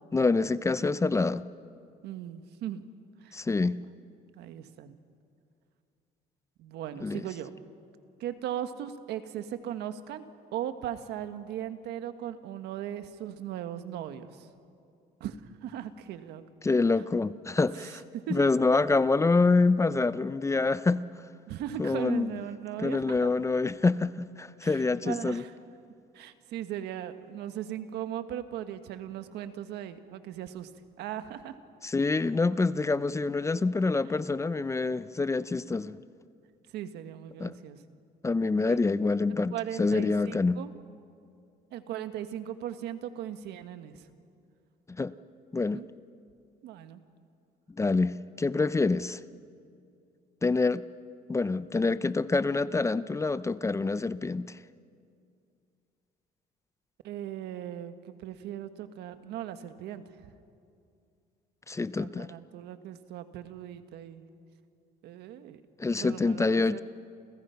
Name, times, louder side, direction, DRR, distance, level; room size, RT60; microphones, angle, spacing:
voice 1, 0.1-1.4 3.3-3.8 7.0-7.2 16.6-18.0 18.3-21.0 21.8-22.3 22.8-25.4 31.8-36.0 37.4-37.6 38.2-40.6 45.0-45.1 45.5-45.8 47.8-49.2 50.4-50.8 51.3-54.6 61.7-62.3 65.8-66.8, left 3 dB, 15° left, 15 dB, 0.6 m, -26 dB
voice 2, 2.0-2.9 3.2-3.4 3.8-3.9 4.3-4.9 6.6-7.5 8.2-10.2 10.5-14.5 15.2-16.4 17.7-18.4 21.5-23.0 24.6-25.5 26.1-30.7 31.0-31.5 36.7-37.8 38.7-38.8 39.5-40.7 41.7-44.0 45.7-45.9 46.6-47.0 57.0-60.0 62.0-64.2 65.0-65.6 66.0-66.8, right 11 dB, 80° right, 9 dB, 1.5 m, -38 dB
29.5 x 29.0 x 5.8 m, 2.4 s
cardioid pair, 110°, 17 cm